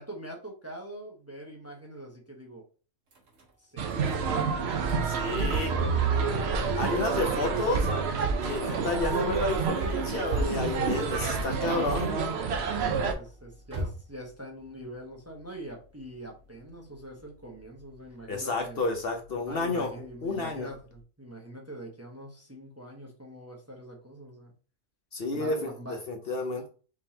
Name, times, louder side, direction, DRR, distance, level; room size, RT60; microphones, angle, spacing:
voice 1, 0.0-2.7 3.6-6.8 8.6-8.9 12.6-18.8 19.4-24.5 25.3-26.0, right 1 dB, 15° right, 0 dB, 0.9 m, -44 dB
sound 1, 3.1-21.0, equal, 80° right, 1.6 m, -49 dB
sound 2, 3.8-13.1, right 5 dB, 60° right, 0.9 m, -28 dB
voice 2, 5.1-5.7 6.8-7.9 8.4-12.1 18.3-19.9 20.2-20.7 25.1-25.6 26.1-26.7, left 3 dB, 55° left, 3 dB, 1.0 m, -30 dB
4.8 x 3.8 x 2.8 m, 0.37 s
omnidirectional pair, 1.3 m